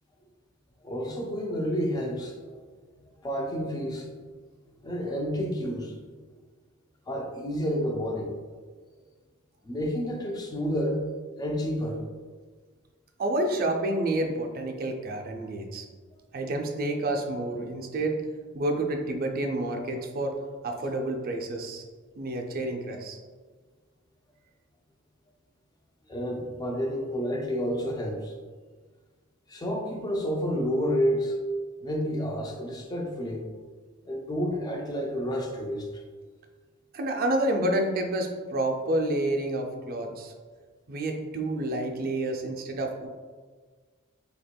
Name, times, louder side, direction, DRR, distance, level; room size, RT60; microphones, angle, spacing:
voice 1, 0.8-2.4 3.2-4.3 4.8-6.0 7.1-8.3 9.6-11.0 11.4-12.0 26.1-28.3 29.5-31.4 31.8-33.5 34.1-35.9, equal, 20° left, 2 dB, 0.4 m, -30 dB
voice 2, 13.2-15.8 16.3-18.2 18.5-20.3 20.6-21.8 22.2-23.2 36.9-40.3 40.9-43.1, right 1 dB, 45° right, 2 dB, 0.4 m, -29 dB
4.3 x 2.8 x 2.2 m, 1.5 s
head